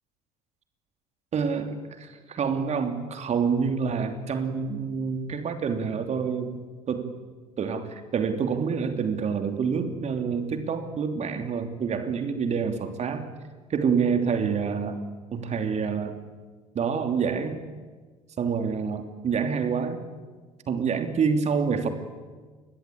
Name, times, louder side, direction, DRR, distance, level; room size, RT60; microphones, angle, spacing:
voice 1, 1.3-6.6 6.9-7.1 7.6-13.3 13.7-15.0 15.3-16.2 16.7-17.6 18.4-20.0 20.7-21.9, right 6 dB, 35° right, 7 dB, 3.0 m, -27 dB
28.5 x 22.0 x 8.6 m, 1.4 s
figure-of-eight pair, 65°, 19 cm